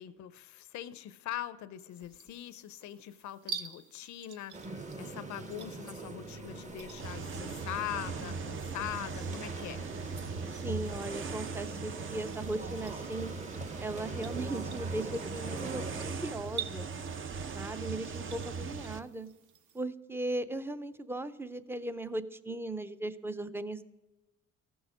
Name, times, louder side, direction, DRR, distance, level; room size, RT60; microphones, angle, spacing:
voice 1, 0.0-9.8, left 12 dB, 70° left, 13 dB, 0.6 m, -42 dB
sound 1, 1.9-19.8, right 7 dB, 75° right, 0.9 m, -49 dB
sound 2, 4.5-16.2, right 2 dB, 25° right, 1.0 m, -43 dB
sound 3, 7.0-19.0, right 4 dB, 45° right, 0.7 m, -39 dB
voice 2, 10.6-13.3 13.8-16.9 17.5-19.3 19.7-23.8, right 2 dB, 10° right, 13 dB, 0.5 m, -37 dB
15.0 x 6.3 x 5.0 m, 1.1 s
cardioid pair, 90°, 30 cm